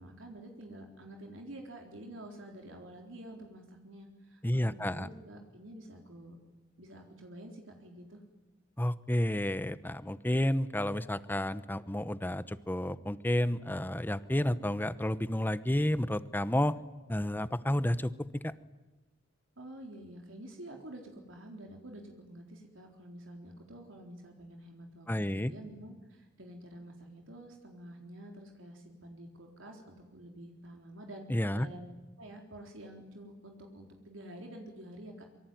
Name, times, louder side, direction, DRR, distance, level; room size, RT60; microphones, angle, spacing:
voice 1, 0.0-6.4 6.8-8.2 19.6-35.2, right 1 dB, 85° right, 2 dB, 4.1 m, -48 dB
voice 2, 4.4-5.1 8.8-16.7 17.1-18.4 25.1-25.5 31.3-31.7, left 1 dB, 10° left, 14 dB, 0.9 m, -31 dB
26.0 x 24.0 x 9.3 m, 1.1 s
head